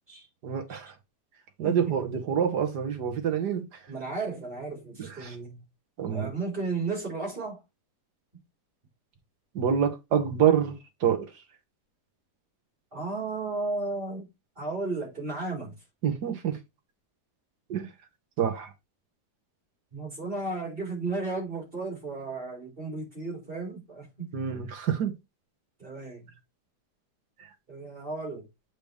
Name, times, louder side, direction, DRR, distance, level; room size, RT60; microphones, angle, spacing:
voice 1, 0.4-0.9 1.6-3.7 5.0-5.4 6.0-6.3 9.6-11.3 16.0-16.6 17.7-17.9 18.4-18.7 24.3-25.2 27.4-27.5, right 8 dB, 90° right, 1.9 m, -27 dB
voice 2, 1.6-1.9 3.9-5.6 6.1-7.6 12.9-14.3 14.6-15.7 19.9-24.3 25.8-26.3 27.7-28.4, right 3 dB, 30° right, 4.7 m, -34 dB
8.0 x 5.1 x 3.5 m
omnidirectional pair, 1.7 m